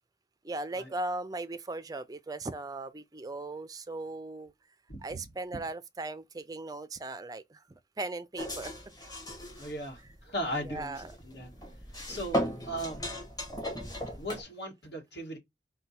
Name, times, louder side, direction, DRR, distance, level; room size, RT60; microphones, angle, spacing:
voice 1, 0.4-4.5 5.0-7.6 8.0-8.7 10.7-11.0 12.1-12.3, right 2 dB, 20° right, 0.3 m, -38 dB
sound 1, 8.4-14.4, equal, 20° left, 1.2 m, -37 dB
voice 2, 9.6-11.5 12.1-13.0 14.2-15.4, equal, 60° left, 1.4 m, -38 dB
4.3 x 2.2 x 4.0 m
head